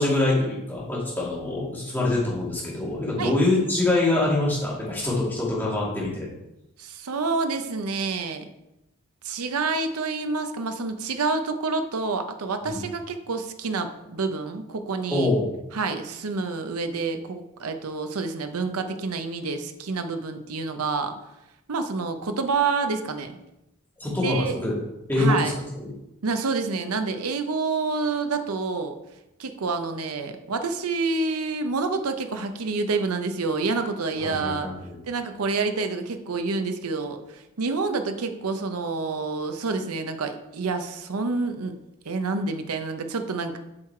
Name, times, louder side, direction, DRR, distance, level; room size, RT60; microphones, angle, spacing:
voice 1, 0.0-6.3 12.6-12.8 15.1-15.6 24.0-24.8 25.1-25.5 25.8-25.9 34.2-35.0, left 2 dB, 10° left, -6 dB, 2.3 m, -24 dB
voice 2, 6.8-8.4 9.2-15.3 15.7-21.2 21.7-23.4 24.1-24.6 25.2-25.6 26.2-29.0 29.4-34.7 35.1-41.7 42.0-43.6, right 4 dB, 85° right, 7 dB, 0.7 m, -28 dB
7.4 x 4.8 x 4.4 m, 0.91 s
head